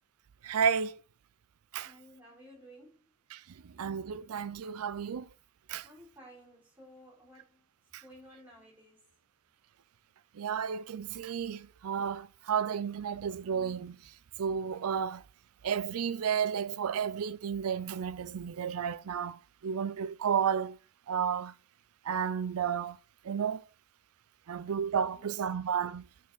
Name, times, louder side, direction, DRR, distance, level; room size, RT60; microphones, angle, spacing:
voice 1, 0.4-1.0 1.7-1.9 3.3-5.3 5.7-5.9 7.9-8.0 10.3-15.2 15.6-20.8 21.1-21.5 22.0-23.0 23.2-23.7 24.5-26.1, right 7 dB, 85° right, 0.4 m, -32 dB
voice 2, 1.8-3.0 5.8-7.6 8.0-9.1 25.2-25.3, equal, 10° right, 3.4 m, -55 dB
9.4 x 4.6 x 3.9 m
head